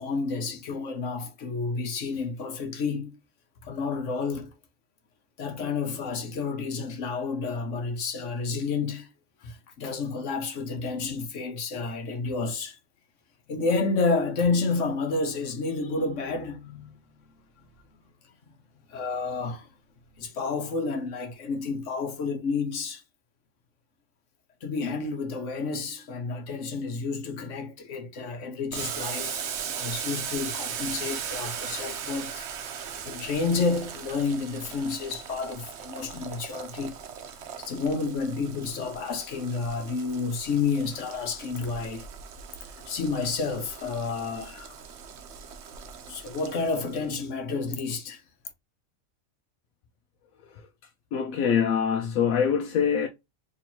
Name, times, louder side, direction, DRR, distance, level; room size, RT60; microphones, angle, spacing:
voice 1, 0.0-3.2 3.6-4.5 5.4-9.1 9.4-12.8 13.5-17.0 18.9-19.7 20.2-23.0 24.6-32.5 33.0-36.9 37.6-42.1 42.6-44.8 46.1-48.2, left 4 dB, 65° left, 1.2 m, -30 dB
Boiling, 28.7-47.1, right 7 dB, 60° right, 0.9 m, -38 dB
voice 2, 51.1-53.1, left 7 dB, 80° left, 1.0 m, -24 dB
4.3 x 3.1 x 2.8 m
omnidirectional pair, 1.4 m